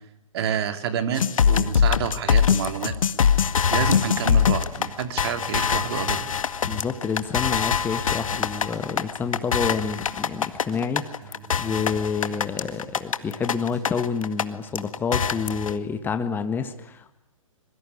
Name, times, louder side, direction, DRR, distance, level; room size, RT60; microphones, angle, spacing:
voice 1, 0.3-2.9 3.7-6.2, right 8 dB, 45° right, 9 dB, 3.1 m, -28 dB
sound 1, 1.1-14.4 14.7-15.7, left 7 dB, 70° left, 1.9 m, -23 dB
sound 2, 3.2-14.0, right 6 dB, 20° right, 5.5 m, -47 dB
voice 2, 6.6-17.1, left 5 dB, 10° left, 9 dB, 1.6 m, -28 dB
25.5 x 23.0 x 10.0 m, 0.83 s
hypercardioid pair, 135°, 18 cm